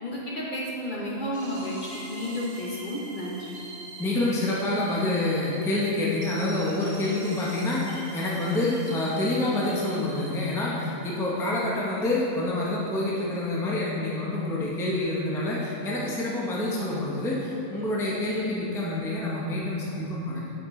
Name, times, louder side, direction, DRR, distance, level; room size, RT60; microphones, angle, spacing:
voice 1, 0.0-3.5, equal, 45° left, -5 dB, 0.8 m, -32 dB
sound 1, 1.3-10.6, right 2 dB, 90° right, 1.5 m, -43 dB
voice 2, 4.0-20.5, left 2 dB, 5° left, -5 dB, 0.5 m, -27 dB
7.1 x 5.2 x 3.1 m, 2.9 s
omnidirectional pair, 1.4 m